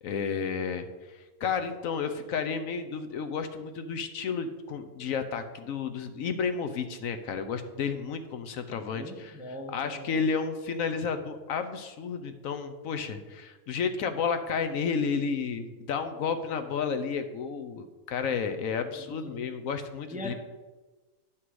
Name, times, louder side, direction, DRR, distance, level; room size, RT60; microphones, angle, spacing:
voice 1, 0.0-20.3, left 6 dB, 70° left, 8 dB, 1.1 m, -32 dB
voice 2, 8.9-10.2 19.1-19.4 20.1-20.3, left 1 dB, 10° right, 3 dB, 0.5 m, -40 dB
9.8 x 6.0 x 4.7 m, 1.3 s
omnidirectional pair, 1.5 m